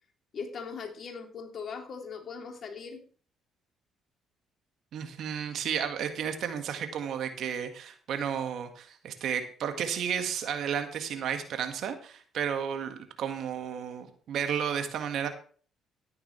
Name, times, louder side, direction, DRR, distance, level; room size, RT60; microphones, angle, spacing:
voice 1, 0.3-3.0, left 5 dB, 50° left, 2 dB, 3.1 m, -39 dB
voice 2, 4.9-15.3, right 8 dB, 60° right, 7 dB, 1.8 m, -32 dB
13.5 x 10.5 x 3.3 m, 0.43 s
hypercardioid pair, 50°, 0 cm